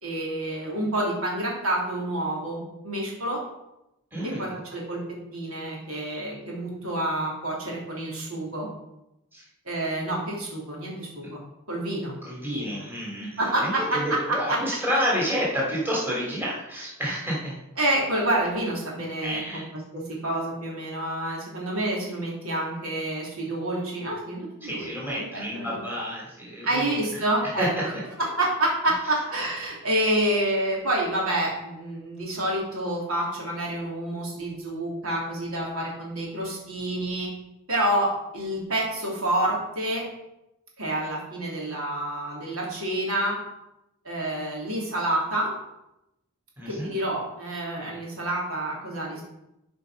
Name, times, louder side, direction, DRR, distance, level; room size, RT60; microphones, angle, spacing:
voice 1, 0.0-3.4 4.2-5.0 5.3-8.7 9.7-11.4 11.7-12.2 12.5-12.7 13.4-14.0 14.3-14.6 17.8-19.6 19.9-24.9 25.2-25.8 26.7-27.7 28.2-37.3 37.7-38.1 38.3-40.0 40.8-43.4 44.1-45.5 46.7-49.2, right 1 dB, 75° right, -3 dB, 3.4 m, -28 dB
voice 2, 4.1-4.6 9.3-9.4 12.2-17.5 19.2-19.6 24.6-27.2 27.6-27.7 46.6-46.9, equal, 10° right, -5 dB, 3.0 m, -30 dB
12.5 x 5.4 x 5.2 m, 0.90 s
head